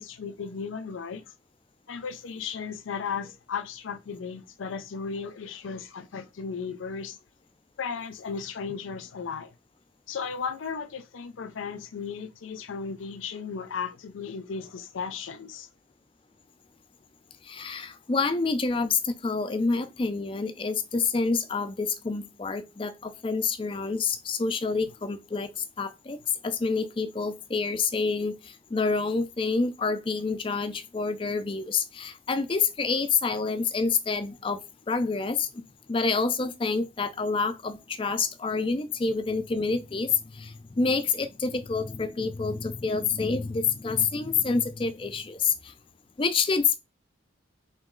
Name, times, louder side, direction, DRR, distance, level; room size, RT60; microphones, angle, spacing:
voice 1, 0.0-1.3 1.9-7.2 7.8-9.5 10.1-15.7, left 6 dB, 85° left, 0.5 m, -35 dB
voice 2, 17.4-34.6 34.9-45.7 46.2-46.8, left 4 dB, 25° left, 0.4 m, -28 dB
3.7 x 3.1 x 3.7 m
head